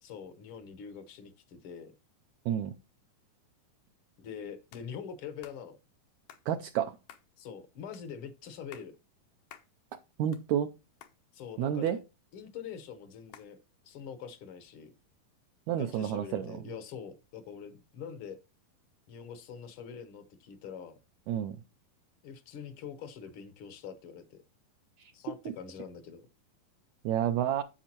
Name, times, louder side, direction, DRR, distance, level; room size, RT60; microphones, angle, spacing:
voice 1, 0.0-1.9 4.2-5.8 7.4-8.9 11.3-12.0 12.3-13.6 13.8-14.9 15.8-18.4 19.1-21.0 22.2-24.4 25.1-26.2, left 7 dB, 70° left, 1.2 m, -44 dB
sound 1, 4.7-4.9 5.4-5.6 6.3-6.5 7.1-7.3 7.9-8.1 8.5-8.9 9.5-9.7 10.1-10.7 11.0-11.2 11.9-12.4 13.3-13.5, left 10 dB, 85° left, 2.7 m, -53 dB
voice 2, 6.5-6.9 10.2-10.7 11.6-12.0 15.7-16.6 21.3-21.6 25.0-25.1 27.0-27.6, right 10 dB, 80° right, 1.7 m, -30 dB
10.0 x 7.7 x 3.0 m
omnidirectional pair, 3.9 m